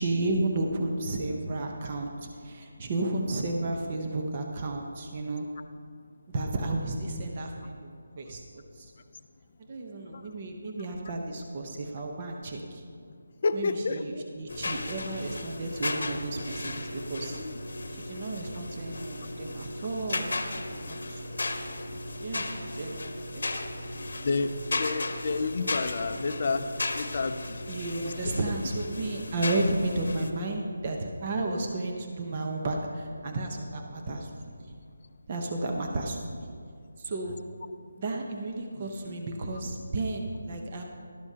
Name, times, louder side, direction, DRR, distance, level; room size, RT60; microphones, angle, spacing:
voice 1, 0.0-5.5 6.3-7.9 8.2-8.4 8.8-8.9 9.7-12.8 13.5-17.4 18.1-21.2 22.2-23.4 27.7-34.8 35.3-36.5 37.0-37.4 38.0-40.8, right 2 dB, 30° right, 2 dB, 0.9 m, -32 dB
voice 2, 13.4-14.2 17.3-17.6 24.2-26.7 26.9-27.4 28.0-28.1, left 4 dB, 40° left, 9 dB, 0.4 m, -29 dB
sound 1, 14.5-30.3, left 2 dB, 65° left, 1.0 m, -35 dB
12.0 x 12.0 x 2.8 m, 2.2 s
figure-of-eight pair, 170°, 0 cm